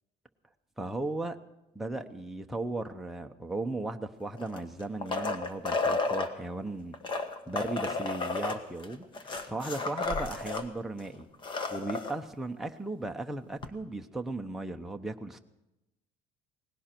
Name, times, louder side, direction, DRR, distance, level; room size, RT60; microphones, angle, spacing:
voice 1, 0.8-1.4 1.7-7.0 7.5-11.3 11.7-15.4, right 2 dB, ahead, 3 dB, 0.8 m, -36 dB
sound 1, 4.4-6.3 6.9-10.7 11.0-11.1 11.3-12.1 13.6-13.7, left 3 dB, 30° left, 1.4 m, -32 dB
19.0 x 16.5 x 4.5 m, 0.95 s
cardioid pair, 150°, 16 cm